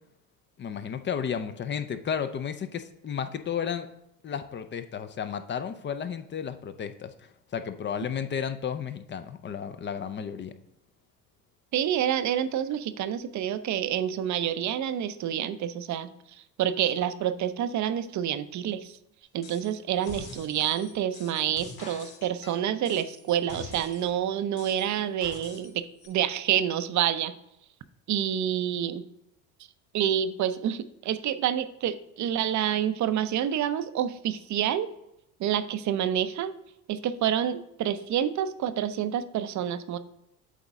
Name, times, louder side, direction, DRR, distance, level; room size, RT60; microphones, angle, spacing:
voice 1, 0.6-3.9 4.2-10.5, left 7 dB, 25° left, 10 dB, 0.4 m, -33 dB
voice 2, 11.7-16.1 16.6-18.9 19.3-27.3 28.1-29.0 29.9-34.9 35.4-36.5 36.9-40.0, right 10 dB, 40° right, 12 dB, 0.6 m, -28 dB
sound 1, 19.4-19.7 20.0-24.1 24.6-25.7 26.0-26.1, left 3 dB, 50° left, 2.1 m, -45 dB
8.3 x 3.9 x 3.6 m, 0.83 s
hypercardioid pair, 75°, 47 cm